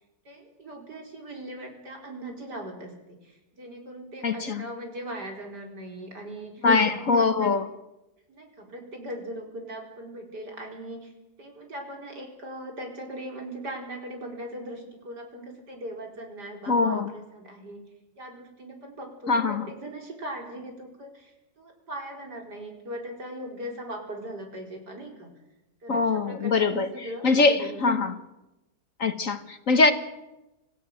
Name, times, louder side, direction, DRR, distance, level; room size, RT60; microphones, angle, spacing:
voice 1, 0.2-6.7 6.9-7.5 8.3-11.1 11.4-17.8 18.2-25.3 25.8-28.1, right 1 dB, 65° right, 5.1 m, -39 dB
voice 2, 4.2-4.6 6.6-7.7 16.7-17.1 19.3-19.7 25.9-26.9 27.2-28.2 29.0-29.9, left 4 dB, 50° left, 1.5 m, -22 dB
26.5 x 16.0 x 7.8 m
omnidirectional pair, 1.9 m